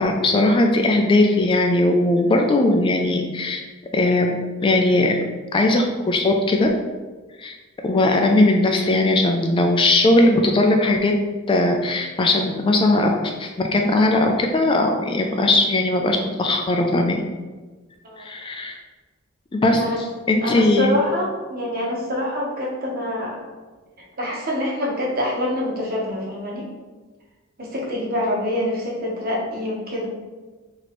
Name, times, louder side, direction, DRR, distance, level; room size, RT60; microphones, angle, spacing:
voice 1, 0.0-3.6 3.9-5.2 5.5-6.7 7.4-7.5 7.8-11.1 11.5-17.2 18.2-18.7 19.5-19.8 20.3-20.9, left 2 dB, 25° left, 3 dB, 0.3 m, -19 dB
voice 2, 20.4-23.4 24.2-26.7 27.6-30.1, left 1 dB, 50° right, -3 dB, 1.0 m, -25 dB
3.1 x 2.9 x 4.2 m, 1.3 s
head